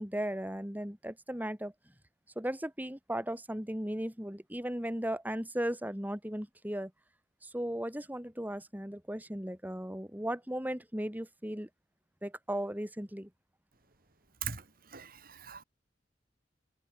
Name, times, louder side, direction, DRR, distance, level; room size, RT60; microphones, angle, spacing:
voice 1, 0.0-1.7 2.4-6.9 7.4-11.7 12.2-13.3, equal, 10° right, 4.2 m, -36 dB
voice 2, 14.9-15.6, right 7 dB, 55° right, 2.9 m, -40 dB
head